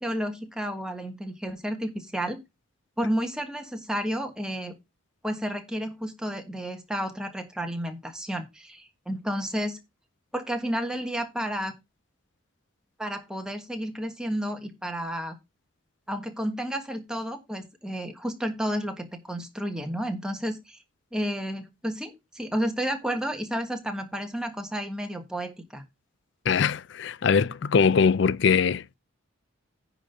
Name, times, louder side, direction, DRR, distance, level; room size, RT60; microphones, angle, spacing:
voice 1, 0.0-2.4 3.0-4.8 5.2-9.8 10.3-11.7 13.0-15.4 16.1-20.8 21.1-25.8, equal, 5° right, 1.4 m, -31 dB
voice 2, 26.5-29.0, left 6 dB, 55° left, 0.4 m, -22 dB
10.0 x 3.8 x 6.7 m
head